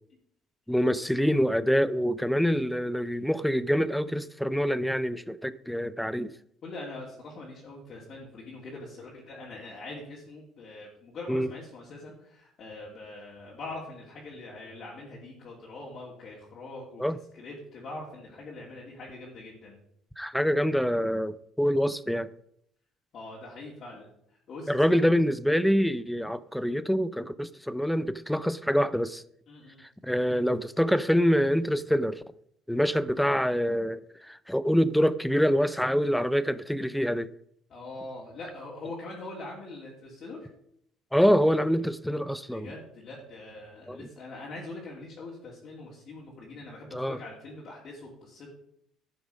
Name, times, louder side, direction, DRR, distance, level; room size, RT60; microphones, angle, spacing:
voice 1, 0.7-6.3 11.3-11.5 17.0-17.2 20.2-22.3 24.7-29.2 30.0-32.2 32.7-37.3 41.1-42.7 43.9-44.1 46.9-47.2, equal, ahead, 0.5 m, -25 dB
voice 2, 6.6-17.0 17.3-19.8 23.1-24.1 24.5-25.1 29.5-29.8 37.7-40.5 42.5-48.5, left 2 dB, 45° left, 2.8 m, -43 dB
11.5 x 7.0 x 5.1 m
cardioid pair, 130°, 0 cm